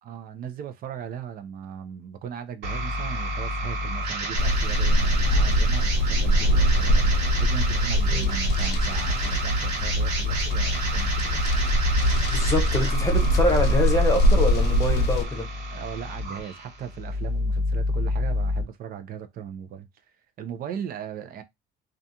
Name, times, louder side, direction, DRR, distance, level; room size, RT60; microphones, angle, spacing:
voice 1, 0.0-11.4 15.7-19.9 20.4-21.4, right 8 dB, 60° right, 0.5 m, -38 dB
sound 1, 2.6-18.6, equal, 80° right, 1.3 m, -30 dB
sound 2, 4.3-15.2, equal, 80° left, 0.5 m, -22 dB
voice 2, 12.3-15.5, left 2 dB, 20° left, 0.7 m, -25 dB
2.4 x 2.3 x 2.7 m
cardioid pair, 110°, 17 cm